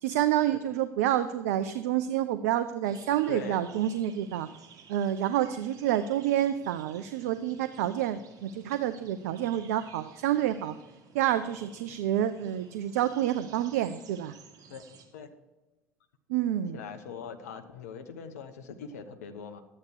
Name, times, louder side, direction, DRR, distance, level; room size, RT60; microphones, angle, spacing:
voice 1, 0.0-4.5 4.9-10.8 11.1-14.3 16.3-16.8, right 11 dB, 70° right, 12 dB, 0.5 m, -28 dB
sound 1, 2.8-15.1, right 6 dB, 45° right, 2.0 m, -55 dB
voice 2, 3.3-3.6 14.7-14.8 15.1-15.3 16.7-19.6, left 6 dB, 75° left, 8 dB, 0.8 m, -41 dB
12.0 x 8.4 x 4.7 m, 1.1 s
figure-of-eight pair, 65°, 9 cm